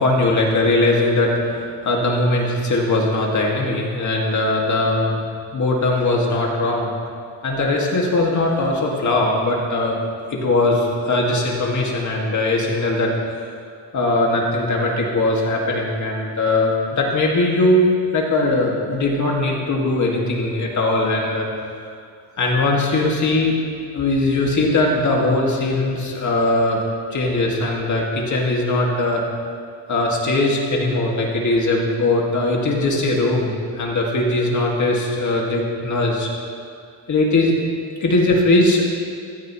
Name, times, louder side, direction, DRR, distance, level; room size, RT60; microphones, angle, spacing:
voice 1, 0.0-5.2 5.5-6.9 7.4-10.0 10.3-13.1 13.9-21.5 22.4-23.6 23.9-26.8 27.1-29.2 29.9-36.3 37.1-37.5 38.0-38.9, left 2 dB, 40° left, -1 dB, 2.1 m, -20 dB
15.5 x 13.5 x 3.1 m, 2.2 s
cardioid pair, 140°, 44 cm